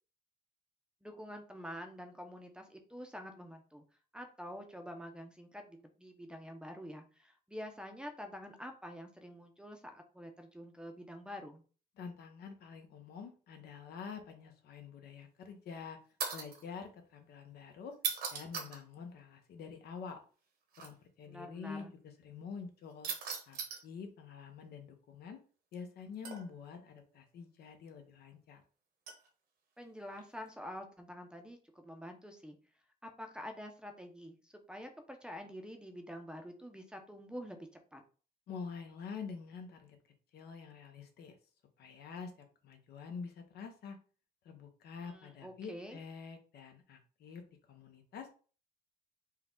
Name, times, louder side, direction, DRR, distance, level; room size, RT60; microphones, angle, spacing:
voice 1, 1.0-3.8 4.1-11.6 21.2-21.9 29.8-32.6 33.0-37.6 37.9-38.0 45.0-46.0, equal, 5° right, 5 dB, 0.6 m, -47 dB
voice 2, 12.0-16.0 16.3-17.9 18.3-20.2 20.8-21.9 22.2-23.1 23.5-23.6 23.8-25.4 25.7-28.6 38.5-40.0 40.3-41.3 41.8-44.0 44.4-47.4 47.7-48.3, left 5 dB, 70° left, 5 dB, 0.9 m, -47 dB
sound 1, 16.2-16.6 17.9-18.8 20.7-20.9 23.0-23.8 26.2-26.7 29.1-29.3 30.2-30.5, right 6 dB, 70° right, 1.1 m, -38 dB
4.5 x 2.3 x 3.7 m, 0.38 s
cardioid pair, 115°, 17 cm